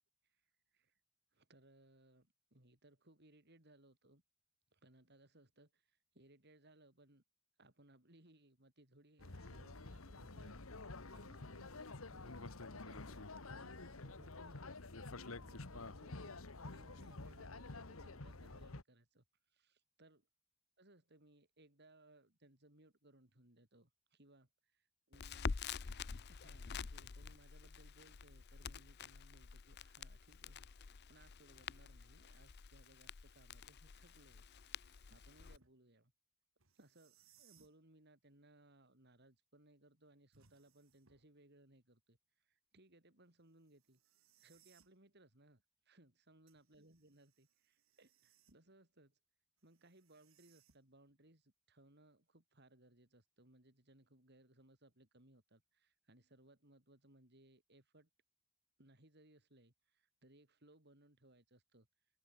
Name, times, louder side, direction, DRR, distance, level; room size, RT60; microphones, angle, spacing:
voice 1, 0.3-1.0 1.3-4.2 4.7-7.2 7.6-20.2 20.8-24.5 25.1-25.6 26.3-34.5 35.1-36.1 36.8-44.0 44.4-49.2 49.6-58.1 58.8-61.9, right 1 dB, 55° right, 5.2 m, -66 dB
sound 1, 9.2-18.8, left 3 dB, 80° left, 1.7 m, -50 dB
Crackle, 25.1-35.6, left 5 dB, 50° left, 0.6 m, -48 dB
sound 2, 33.9-35.8 36.6-37.8 40.3-41.4 43.6-45.0 46.5-48.8 49.6-51.1, right 8 dB, 75° right, 3.1 m, -73 dB
head